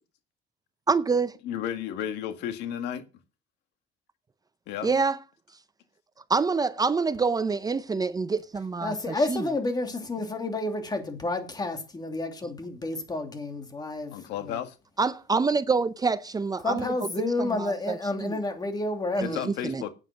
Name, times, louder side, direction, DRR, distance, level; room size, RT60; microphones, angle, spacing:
voice 1, 0.9-1.4 4.8-5.2 6.3-9.5 15.0-16.9 17.4-18.4 19.2-19.8, right 4 dB, 20° right, 0.6 m, -26 dB
voice 2, 1.4-3.0 4.7-4.9 14.1-14.8 19.2-19.9, left 10 dB, 85° left, 1.8 m, -33 dB
voice 3, 8.8-14.6 16.6-19.4, left 2 dB, 25° left, 2.7 m, -30 dB
9.2 x 8.1 x 7.5 m
cardioid pair, 110°, 17 cm